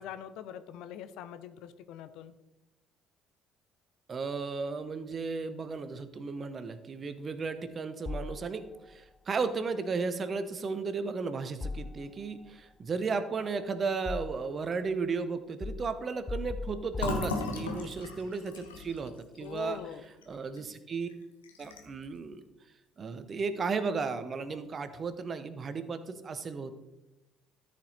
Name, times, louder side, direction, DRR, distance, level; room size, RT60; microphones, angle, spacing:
voice 1, 0.0-2.3 17.6-17.7 19.4-20.0, left 10 dB, 70° left, 11 dB, 0.6 m, -43 dB
voice 2, 4.1-19.8 20.3-21.1 21.6-22.4 23.0-26.7, right 4 dB, 40° right, 11 dB, 0.9 m, -34 dB
sound 1, 8.1-8.9 11.6-12.5 13.4-14.7 15.6-17.8, left 3 dB, 25° left, 0.5 m, -40 dB
Fill (with liquid), 17.0-20.6 21.0-21.1 21.4-22.0, left 3 dB, 90° left, 1.1 m, -37 dB
13.0 x 5.3 x 4.2 m, 1.0 s
hypercardioid pair, 55°, 0 cm